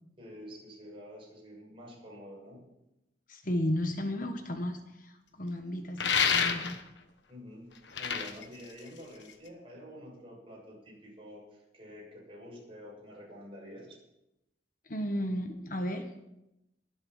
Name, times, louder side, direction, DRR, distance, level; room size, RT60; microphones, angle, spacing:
voice 1, 0.2-2.6 7.3-14.0, equal, 30° right, -3 dB, 6.5 m, -48 dB
voice 2, 3.3-6.8 14.9-16.0, left 1 dB, 50° left, 6 dB, 1.3 m, -34 dB
sound 1, 6.0-7.0 7.8-9.5, left 6 dB, 80° left, 1.3 m, -29 dB
21.5 x 8.0 x 5.7 m, 0.88 s
head